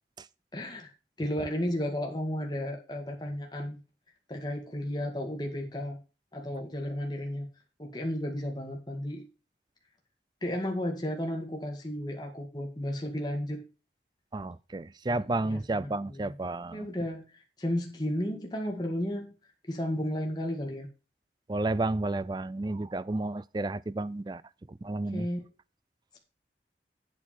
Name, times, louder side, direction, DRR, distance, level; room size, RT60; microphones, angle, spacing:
voice 1, 0.5-0.9 1.2-3.8 4.3-6.0 6.3-7.5 7.8-9.3 10.4-13.6 15.1-16.4 16.7-19.3 19.7-20.9 25.1-25.5, equal, 25° left, 1.9 m, -33 dB
voice 2, 14.3-16.9 21.5-24.4 24.7-25.3, right 2 dB, 25° right, 0.4 m, -32 dB
8.3 x 8.3 x 4.5 m
head